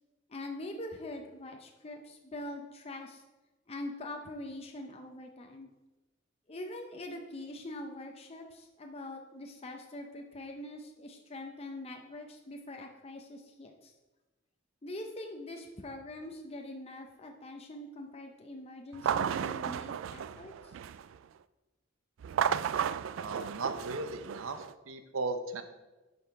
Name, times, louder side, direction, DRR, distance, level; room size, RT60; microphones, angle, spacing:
voice 1, 0.3-3.2 3.7-5.7 6.5-13.9 14.8-20.7, left 1 dB, 30° left, 3 dB, 0.7 m, -43 dB
sound 1, 18.9-21.2 22.2-24.7, right 8 dB, 65° right, 0.3 m, -33 dB
voice 2, 23.1-25.6, right 3 dB, 85° right, 8 dB, 0.8 m, -37 dB
9.7 x 5.5 x 4.7 m, 1.1 s
head